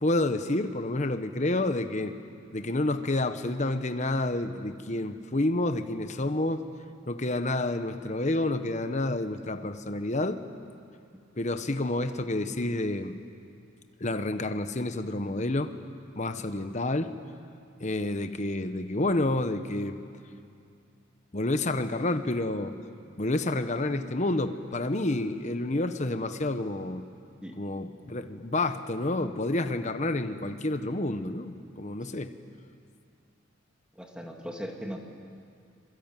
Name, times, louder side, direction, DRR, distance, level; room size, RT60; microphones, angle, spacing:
voice 1, 0.0-2.2 2.5-6.7 7.1-10.4 11.4-13.1 14.0-15.7 16.1-17.1 17.8-20.0 21.3-22.7 23.2-27.0 27.6-32.3, left 2 dB, 35° left, 9 dB, 1.1 m, -29 dB
voice 2, 34.0-35.0, equal, 5° right, 1 dB, 2.2 m, -38 dB
26.0 x 23.0 x 9.1 m, 2.4 s
head